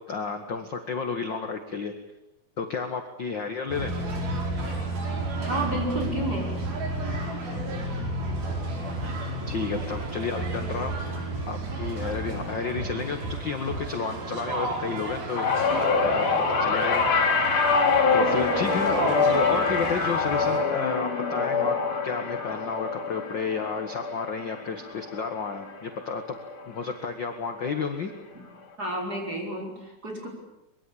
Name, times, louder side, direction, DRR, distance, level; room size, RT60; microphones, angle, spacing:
voice 1, 0.1-1.9 2.6-3.9 9.5-10.9 11.5-15.4 16.0-17.1 18.1-21.7 22.0-26.4 26.7-28.1, left 5 dB, 45° left, 6 dB, 1.7 m, -31 dB
sound 1, 3.7-20.6, right 2 dB, 90° right, 6.7 m, -32 dB
voice 2, 5.1-6.6 28.8-30.3, right 1 dB, 25° right, 1 dB, 6.0 m, -31 dB
sound 2, 15.4-25.8 26.1-26.6 27.7-27.8, left 4 dB, 60° left, 4.6 m, -25 dB
24.0 x 23.0 x 8.7 m, 0.93 s
omnidirectional pair, 4.1 m